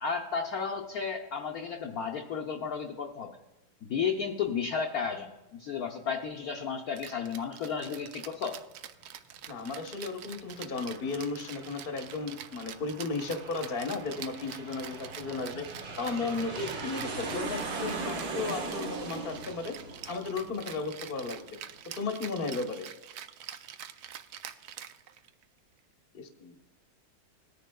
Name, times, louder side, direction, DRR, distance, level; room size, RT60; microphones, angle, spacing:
voice 1, 0.0-3.3 3.8-8.6, left 6 dB, 65° left, 0 dB, 1.0 m, -33 dB
Rattle (instrument), 7.0-25.4, right 10 dB, 90° right, 0.8 m, -46 dB
voice 2, 9.5-15.6 16.0-19.8 20.1-21.6 22.0-22.9 26.1-26.5, left 4 dB, 40° left, 4 dB, 0.9 m, -35 dB
Aircraft, 10.3-21.5, right 3 dB, 70° right, 2.1 m, -40 dB
19.0 x 10.0 x 2.3 m, 1.1 s
omnidirectional pair, 2.3 m